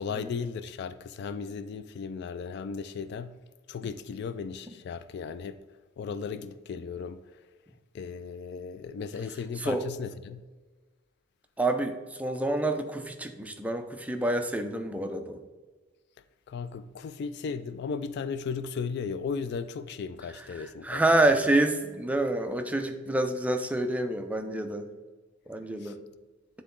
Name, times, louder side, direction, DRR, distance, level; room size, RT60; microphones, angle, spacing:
voice 1, 0.0-3.4 3.7-5.6 6.0-7.2 7.9-10.4 16.5-21.0 25.8-25.9, left 5 dB, 55° left, 0.3 m, -36 dB
voice 2, 11.6-15.4 20.6-24.9 25.5-26.0, right 2 dB, 5° right, 0.5 m, -28 dB
9.3 x 3.8 x 3.7 m
head